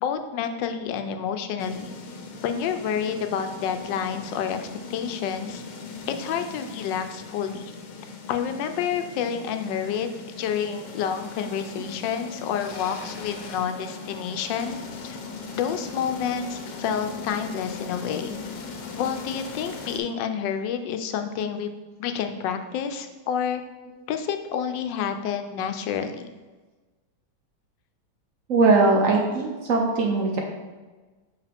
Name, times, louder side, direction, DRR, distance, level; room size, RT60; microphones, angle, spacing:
voice 1, 0.0-1.9 2.4-5.6 6.1-7.7 8.3-10.1 10.4-15.2 15.5-18.4 19.0-21.7 22.0-23.6 24.1-26.2, left 8 dB, 90° left, 8 dB, 1.3 m, -29 dB
sound 1, 1.6-20.0, left 4 dB, 70° left, 1.2 m, -39 dB
voice 2, 28.5-30.4, right 3 dB, 60° right, 1 dB, 0.9 m, -20 dB
5.7 x 4.8 x 3.5 m, 1.3 s
omnidirectional pair, 1.9 m